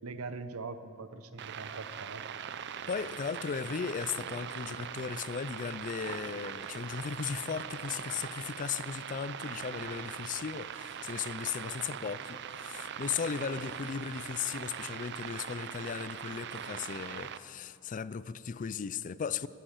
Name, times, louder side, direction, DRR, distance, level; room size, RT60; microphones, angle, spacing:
voice 1, 0.0-2.2, right 3 dB, 85° right, 0.8 m, -42 dB
sound 1, 1.4-17.4, right 8 dB, 55° right, 0.5 m, -41 dB
voice 2, 2.9-19.5, left 6 dB, 35° left, 0.4 m, -36 dB
15.0 x 10.0 x 7.3 m
head